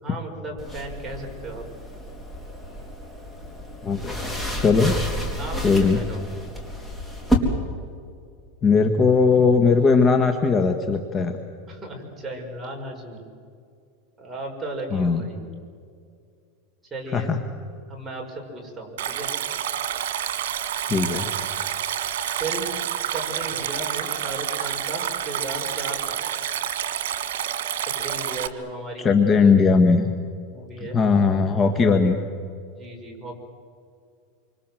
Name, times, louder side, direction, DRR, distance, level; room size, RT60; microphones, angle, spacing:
voice 1, 0.0-1.6 5.4-6.2 11.7-13.2 14.2-15.4 16.9-17.3 17.9-19.3 22.4-22.7 23.1-26.2 27.8-29.1 30.5-31.0 32.8-33.4, right 2 dB, 10° right, -1 dB, 5.7 m, -35 dB
sound 1, 0.6-7.3, equal, 5° left, 3.8 m, -30 dB
voice 2, 3.8-4.2 4.6-5.0 5.6-6.0 8.6-11.4 14.9-15.3 17.1-17.4 20.9-21.3 29.0-30.1 30.8-32.2, left 4 dB, 20° left, 5 dB, 1.6 m, -19 dB
Stream, 19.0-28.5, right 10 dB, 85° right, 1.8 m, -28 dB
28.0 x 25.5 x 7.8 m, 2.3 s
supercardioid pair, 155°, 0 cm